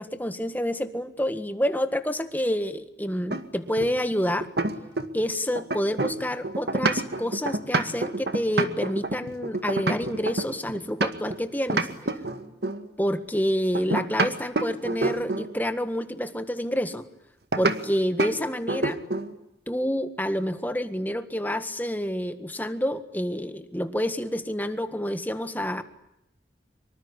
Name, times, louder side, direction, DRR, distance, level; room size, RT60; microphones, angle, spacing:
voice 1, 0.0-4.5 5.1-11.9 13.0-17.1 17.6-19.0 19.7-25.8, equal, 10° left, 9 dB, 1.6 m, -28 dB
sound 1, 3.3-5.3 5.6-11.4 11.7-12.9 13.7-15.5 17.5-17.8 18.2-18.4 18.7-19.3, right 2 dB, 70° right, 2.0 m, -27 dB
25.5 x 24.0 x 9.8 m, 0.82 s
head